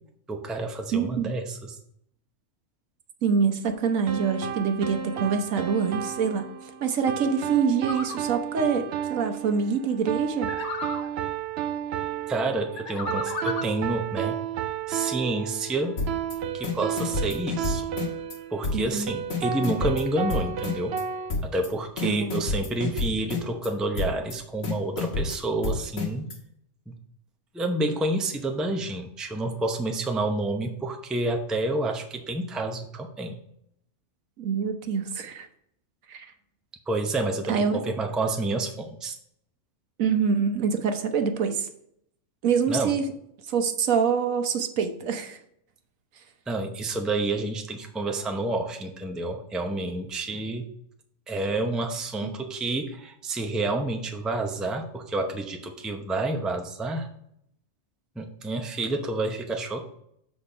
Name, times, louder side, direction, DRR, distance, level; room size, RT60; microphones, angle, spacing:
voice 1, 0.3-1.8 12.3-14.4 14.9-16.0 16.5-17.8 18.5-20.9 21.4-26.3 26.9-27.0 27.5-33.4 36.9-39.1 42.7-43.0 46.5-50.7 51.3-57.1 58.2-59.9, right 2 dB, ahead, 4 dB, 0.5 m, -29 dB
voice 2, 0.9-1.3 3.2-6.5 6.8-10.5 18.7-19.1 22.0-22.4 34.4-35.5 36.1-36.3 37.5-37.8 40.0-41.7 42.4-43.0 43.5-45.4 52.2-52.3, right 6 dB, 85° right, 7 dB, 1.3 m, -25 dB
sound 1, 4.1-21.3, right 9 dB, 60° right, 0.7 m, -33 dB
sound 2, 7.9-8.2 10.5-11.1 12.8-13.7, left 4 dB, 45° left, 0.8 m, -33 dB
sound 3, 16.0-16.4 16.6-18.4 18.6-19.0 19.3-21.0 21.3-21.7 22.0-23.7 24.0-24.4 24.6-26.4, left 4 dB, 90° left, 1.9 m, -29 dB
7.1 x 4.2 x 5.0 m, 0.71 s
omnidirectional pair, 1.4 m